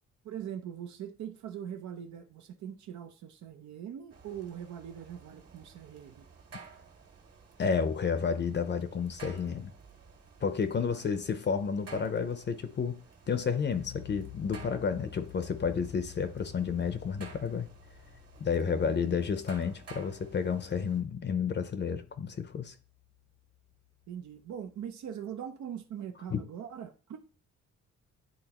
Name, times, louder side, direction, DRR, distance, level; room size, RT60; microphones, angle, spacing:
voice 1, 0.2-6.2 10.9-11.1 18.7-19.1 24.1-27.2, right 9 dB, 75° right, 0.7 m, -42 dB
sound 1, 4.1-21.0, right 5 dB, 55° right, 1.9 m, -54 dB
voice 2, 7.6-9.7 10.4-13.0 13.3-17.7 18.4-22.7 26.3-26.4, left 6 dB, 35° left, 0.7 m, -31 dB
sound 2, 13.7-24.9, left 15 dB, 85° left, 1.5 m, -51 dB
10.5 x 3.8 x 3.0 m
cardioid pair, 110°, 29 cm